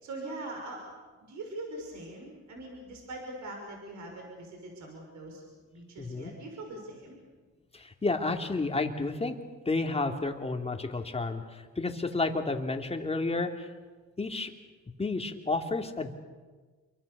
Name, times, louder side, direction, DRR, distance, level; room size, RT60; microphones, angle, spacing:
voice 1, 0.0-0.9 1.3-5.4 5.7-7.2, right 2 dB, 70° right, 1 dB, 5.9 m, -42 dB
voice 2, 6.0-6.3 7.7-9.3 9.7-13.7 14.2-14.5 15.0-16.1, left 3 dB, 20° left, 4 dB, 2.7 m, -31 dB
27.5 x 23.5 x 6.8 m, 1.4 s
cardioid pair, 90°, 30 cm